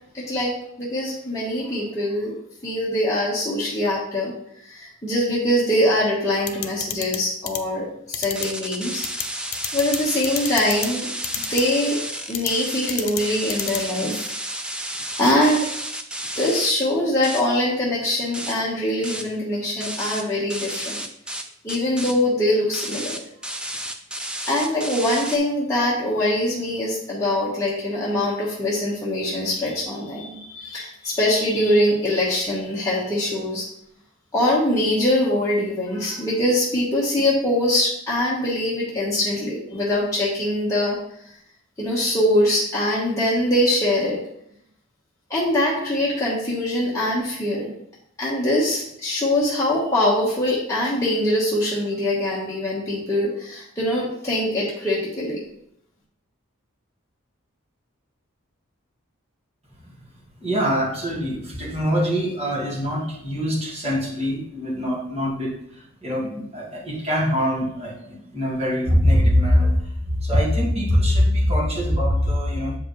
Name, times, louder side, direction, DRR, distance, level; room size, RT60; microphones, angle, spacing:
voice 1, 0.1-2.4 2.6-4.3 4.6-9.0 9.7-11.1 11.5-12.0 12.3-14.3 15.2-15.6 16.3-21.0 21.6-23.2 24.5-33.6 34.3-41.0 41.2-41.3 41.8-44.2 45.3-47.7 48.2-55.4, left 1 dB, 15° left, -8 dB, 1.2 m, -23 dB
sound 1, 6.5-7.2 7.5-7.6 8.1-8.5 9.0-9.2 9.5-10.0 10.2-10.9 11.2-11.6 12.3-12.5 12.9-13.2 13.5-13.8, left 11 dB, 75° left, 0.6 m, -27 dB
sound 2, 8.4-16.7 17.2-17.4 17.9-18.1 18.3-18.6 19.0-19.3 19.8-20.2 20.5-21.4 21.7-22.1 22.7-25.4, right 1 dB, 5° right, 0.3 m, -32 dB
voice 2, 60.4-72.8, equal, 30° right, -5 dB, 1.9 m, -23 dB
7.4 x 5.1 x 3.1 m, 0.71 s
head